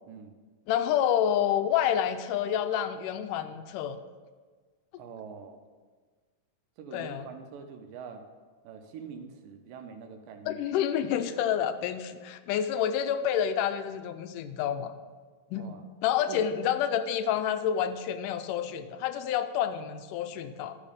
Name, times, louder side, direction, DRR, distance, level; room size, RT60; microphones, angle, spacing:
voice 1, 0.7-4.0 6.9-7.3 10.5-14.9 15.5-15.8 16.0-20.8, left 9 dB, 80° left, 10 dB, 2.0 m, -28 dB
voice 2, 5.0-5.6 6.8-8.3 8.6-10.7 15.6-15.8 16.3-16.4, right 6 dB, 90° right, 7 dB, 2.4 m, -44 dB
12.0 x 5.2 x 5.2 m, 1.4 s
omnidirectional pair, 3.8 m